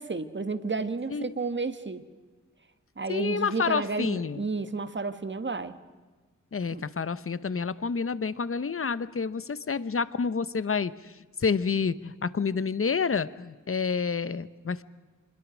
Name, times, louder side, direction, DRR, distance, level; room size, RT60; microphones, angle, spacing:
voice 1, 0.0-2.0 3.0-5.7 6.7-6.8 9.8-9.9, right 4 dB, 35° right, 11 dB, 1.4 m, -32 dB
voice 2, 3.1-4.4 6.5-11.1 11.4-14.8, left 5 dB, 45° left, 16 dB, 0.9 m, -29 dB
26.5 x 21.0 x 6.2 m, 1.4 s
wide cardioid pair, 95°, 31 cm